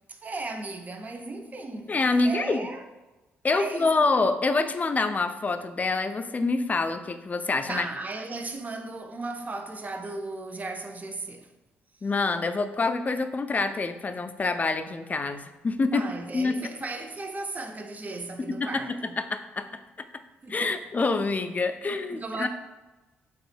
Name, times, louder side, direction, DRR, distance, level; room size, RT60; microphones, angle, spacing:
voice 1, 0.1-1.9 2.2-2.9 3.5-4.1 7.7-11.5 15.9-19.2 20.4-20.7 22.1-22.5, right 3 dB, 30° right, 0.5 m, -36 dB
voice 2, 1.9-2.7 3.4-7.9 12.0-16.1 16.3-16.7 18.5-19.7 20.5-22.5, left 3 dB, 30° left, 0.3 m, -26 dB
3.6 x 2.9 x 3.2 m
hypercardioid pair, 50°, 5 cm